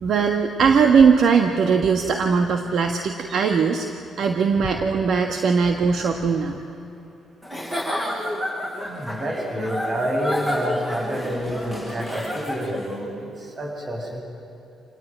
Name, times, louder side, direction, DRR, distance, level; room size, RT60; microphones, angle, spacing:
voice 1, 0.0-3.9 4.2-6.6, right 5 dB, 65° right, 4 dB, 1.5 m, -19 dB
Giggle / Chuckle chortle, 7.4-12.9, equal, 15° right, 6.4 m, -30 dB
voice 2, 8.9-13.3 13.6-14.2, equal, 35° right, 0 dB, 7.6 m, -28 dB
27.5 x 19.5 x 9.2 m, 3.0 s
cardioid pair, 90°, 0 cm